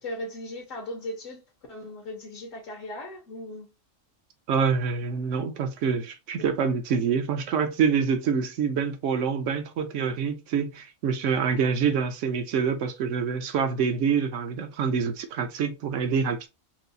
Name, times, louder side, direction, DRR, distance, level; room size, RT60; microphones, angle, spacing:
voice 1, 0.0-1.4 1.7-3.7, left 1 dB, 75° left, 1.3 m, -37 dB
voice 2, 4.5-16.5, right 6 dB, 70° right, 1.1 m, -26 dB
4.6 x 2.0 x 2.6 m
omnidirectional pair, 1.3 m